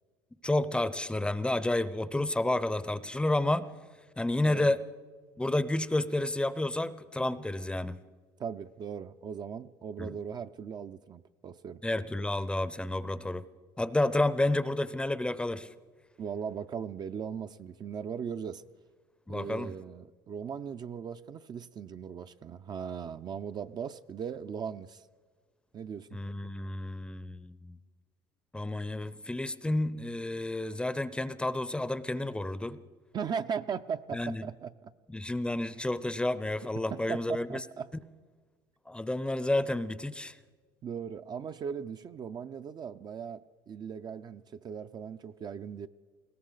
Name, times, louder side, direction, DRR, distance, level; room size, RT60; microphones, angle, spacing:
voice 1, 0.4-3.7 4.2-4.8 5.4-8.0 10.0-10.1 11.8-13.4 13.8-15.7 19.3-19.7 26.1-27.8 28.5-32.8 34.1-34.4 35.1-37.6 38.9-40.4, left 1 dB, 10° left, 16 dB, 0.6 m, -30 dB
voice 2, 8.4-11.8 16.2-18.6 19.3-25.0 25.7-26.2 33.1-34.9 36.7-37.9 40.8-45.9, right 7 dB, 35° right, 9 dB, 0.5 m, -38 dB
20.5 x 17.0 x 4.0 m, 1.4 s
supercardioid pair, 95°, 12 cm